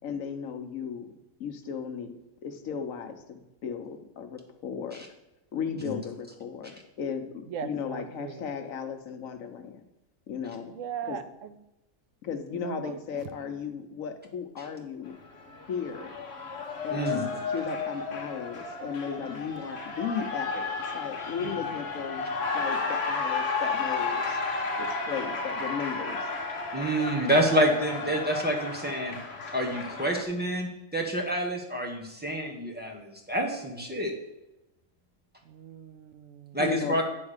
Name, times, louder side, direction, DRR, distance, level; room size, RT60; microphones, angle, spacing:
voice 1, 0.0-1.1 1.4-2.1 2.4-5.1 5.5-9.8 10.3-10.7 11.0-11.2 12.2-15.2 15.7-16.1 16.8-24.4 24.8-26.2 36.6-37.0, left 6 dB, 85° left, 7 dB, 1.2 m, -35 dB
voice 2, 7.5-8.4 10.8-11.5 12.6-13.0 35.5-36.5, right 8 dB, 75° right, 10 dB, 1.0 m, -38 dB
Cheering, 15.1-30.2, left 4 dB, 55° left, 1.2 m, -33 dB
voice 3, 16.9-17.2 26.7-29.1 29.5-34.1 36.5-37.0, right 1 dB, 10° right, 0 dB, 1.2 m, -28 dB
9.6 x 3.6 x 6.5 m, 0.97 s
omnidirectional pair, 1.4 m